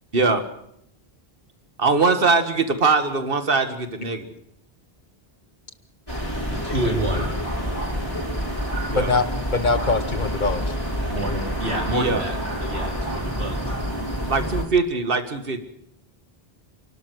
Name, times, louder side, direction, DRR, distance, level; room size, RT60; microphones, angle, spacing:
voice 1, 1.8-4.3 8.9-9.2 11.9-12.2 14.3-15.6, right 4 dB, 65° right, 9 dB, 1.9 m, -21 dB
sound 1, 6.1-14.6, equal, 20° left, 5.8 m, -28 dB
voice 2, 6.4-7.3 11.1-13.6, right 1 dB, 85° right, 2 dB, 4.1 m, -28 dB
voice 3, 8.9-9.2 9.5-10.7, left 4 dB, 50° left, 12 dB, 1.3 m, -22 dB
28.0 x 12.5 x 8.0 m, 0.74 s
omnidirectional pair, 1.0 m